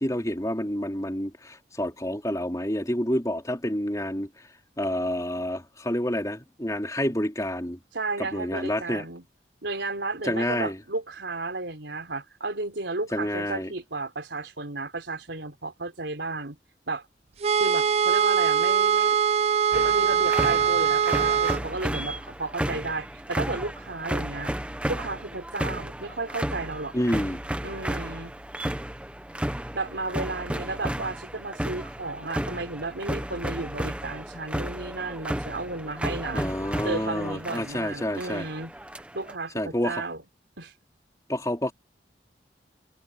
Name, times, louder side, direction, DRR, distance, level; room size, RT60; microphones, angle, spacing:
voice 1, 0.0-4.3 4.8-7.8 8.3-9.0 10.2-10.8 13.1-13.7 26.9-27.4 36.3-38.5 39.5-40.0 41.3-41.7, left 1 dB, 20° left, 3.6 m, -28 dB
voice 2, 7.9-9.2 9.6-16.6 16.9-17.0 17.6-19.2 19.7-24.5 24.9-26.9 27.6-28.4 29.7-36.5 36.8-38.7 39.1-40.2 40.6-40.7, right 3 dB, 85° right, 4.0 m, -33 dB
sound 1, 17.4-21.6, right 7 dB, 35° right, 0.4 m, -22 dB
sound 2, 19.7-39.3, equal, 5° right, 1.2 m, -33 dB
head